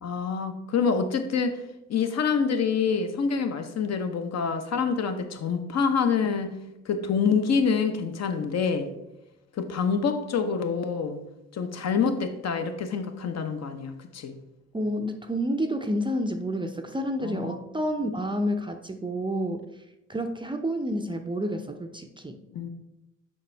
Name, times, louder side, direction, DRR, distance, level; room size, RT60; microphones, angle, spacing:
voice 1, 0.0-1.6 1.9-6.6 6.8-8.9 9.5-11.2 11.5-14.4 17.2-17.6 22.5-22.7, left 5 dB, 50° left, 7 dB, 0.9 m, -26 dB
voice 2, 14.7-19.6 20.1-22.4, equal, 15° right, 6 dB, 0.6 m, -29 dB
6.5 x 4.8 x 3.4 m, 0.90 s
supercardioid pair, 65°, 34 cm